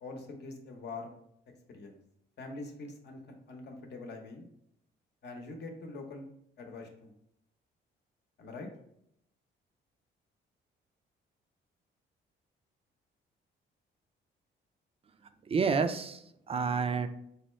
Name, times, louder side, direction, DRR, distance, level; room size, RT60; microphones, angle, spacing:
voice 1, 0.0-1.2 1.7-2.0 2.4-3.2 3.5-4.5 5.2-6.3 6.6-7.1 8.4-8.7, left 3 dB, 60° left, 3 dB, 0.8 m, -44 dB
voice 2, 15.4-17.1, right 5 dB, 30° right, 9 dB, 0.4 m, -29 dB
4.1 x 2.2 x 3.1 m, 0.74 s
cardioid pair, 90°, 20 cm